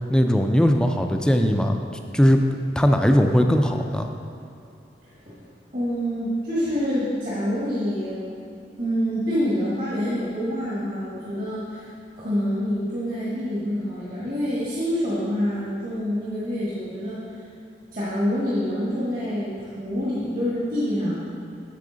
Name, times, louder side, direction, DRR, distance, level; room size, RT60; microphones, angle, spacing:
voice 1, 0.1-1.8 2.1-2.4 2.8-4.1, equal, 5° left, 4 dB, 0.3 m, -19 dB
voice 2, 5.7-8.2 8.8-11.9 12.2-17.4 17.9-21.2, equal, 50° right, -8 dB, 1.5 m, -26 dB
8.4 x 6.9 x 3.9 m, 2.5 s
head